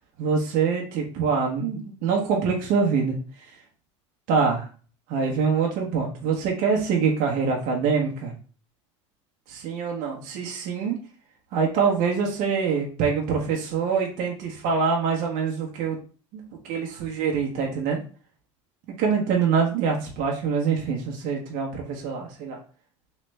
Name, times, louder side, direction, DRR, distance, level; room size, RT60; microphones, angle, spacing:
voice 1, 0.2-3.1 4.3-4.6 5.1-8.3 9.5-11.0 11.5-16.0 16.7-18.0 19.0-22.6, right 5 dB, 60° right, -1 dB, 1.0 m, -24 dB
3.2 x 3.1 x 3.2 m, 0.37 s
supercardioid pair, 100°, 16 cm